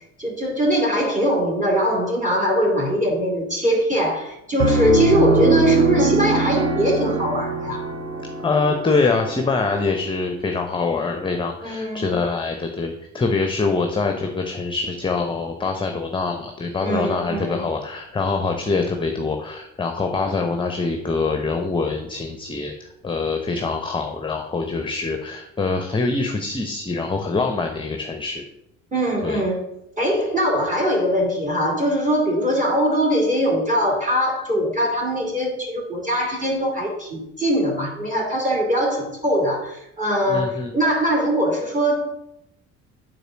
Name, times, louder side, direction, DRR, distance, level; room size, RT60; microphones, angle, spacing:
voice 1, 0.2-7.8 11.6-12.1 16.8-17.7 28.9-29.6 30.0-42.2, equal, 20° right, -2 dB, 2.4 m, -22 dB
Piano, 4.6-10.1, right 3 dB, 35° right, 1.3 m, -22 dB
voice 2, 8.4-28.4 29.2-29.4 40.3-40.7, left 3 dB, 15° left, 5 dB, 0.8 m, -24 dB
8.2 x 3.9 x 6.1 m, 0.82 s
figure-of-eight pair, 50°, 39 cm